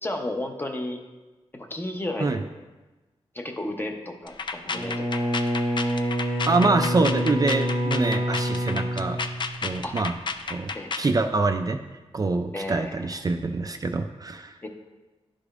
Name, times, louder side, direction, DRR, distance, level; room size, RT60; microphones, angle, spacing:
voice 1, 0.0-1.0 1.5-2.3 3.3-5.3 9.8-10.0 10.7-10.9 12.5-13.1 14.6-14.7, left 1 dB, 20° left, 3 dB, 0.8 m, -33 dB
sound 1, 4.3-11.1, left 4 dB, 45° left, 0.4 m, -32 dB
Bowed string instrument, 4.6-10.0, equal, 85° left, 1.4 m, -27 dB
voice 2, 6.5-9.2 9.6-10.1 10.5-10.7 11.0-11.8 12.1-14.5, right 3 dB, 35° right, 5 dB, 0.4 m, -25 dB
11.5 x 4.9 x 2.5 m, 1.2 s
wide cardioid pair, 95°, 11 cm